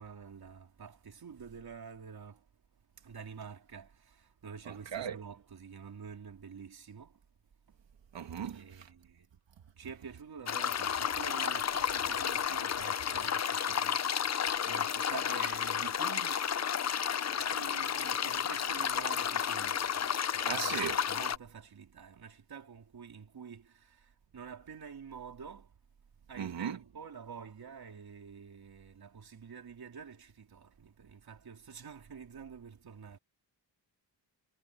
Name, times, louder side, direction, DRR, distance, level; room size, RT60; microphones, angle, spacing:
voice 1, 0.0-2.5 3.0-7.2 7.7-7.8 8.5-9.3 9.8-17.0 17.4-25.7 26.3-33.2, right 6 dB, 55° right, 3.7 m, -48 dB
voice 2, 4.7-5.2 8.1-8.9 20.4-21.0 26.4-26.8, right 8 dB, 85° right, 2.3 m, -37 dB
sound 1, 10.5-21.4, left 8 dB, 40° left, 0.6 m, -32 dB
wide cardioid pair, 140°, 43 cm